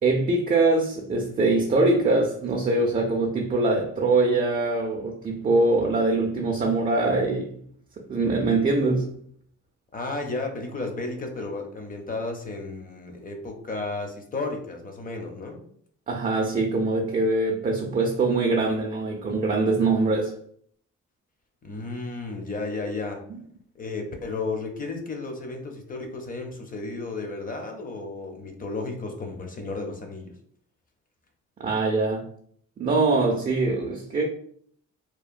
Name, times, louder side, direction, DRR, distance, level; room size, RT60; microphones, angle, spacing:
voice 1, 0.0-7.5 8.1-9.1 16.1-20.3 31.6-32.3 32.8-34.2, right 3 dB, 30° right, 0.4 m, -23 dB
voice 2, 9.9-15.6 21.6-23.2 23.7-30.4, left 3 dB, 30° left, 0.6 m, -33 dB
2.9 x 2.1 x 2.4 m
cardioid pair, 90°, 30 cm